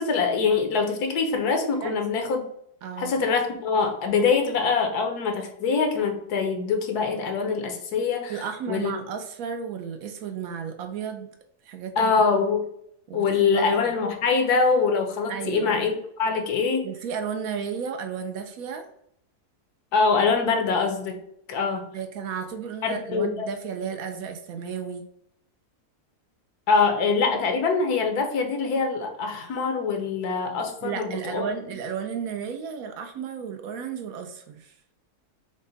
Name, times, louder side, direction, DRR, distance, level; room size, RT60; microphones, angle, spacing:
voice 1, 0.0-2.4 3.0-8.3 8.7-8.9 12.0-12.6 13.1-16.9 19.9-21.2 21.5-21.8 22.8-23.3 26.7-31.7, left 5 dB, 75° left, 4 dB, 1.3 m, -24 dB
voice 2, 2.8-3.2 8.3-11.3 11.6-12.5 13.1-13.7 15.3-15.8 16.8-18.9 21.9-25.1 30.8-34.7, right 7 dB, 70° right, 6 dB, 0.9 m, -33 dB
5.2 x 2.1 x 3.9 m, 0.72 s
omnidirectional pair, 1.7 m